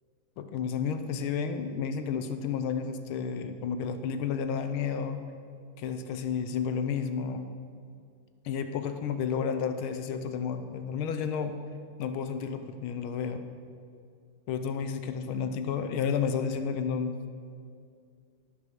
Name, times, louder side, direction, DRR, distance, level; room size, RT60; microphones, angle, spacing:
voice 1, 0.4-5.2 5.8-7.5 8.4-11.6 12.0-13.4 14.5-17.2, left 6 dB, 85° left, 8 dB, 1.6 m, -31 dB
12.5 x 9.9 x 5.9 m, 2.3 s
omnidirectional pair, 2.2 m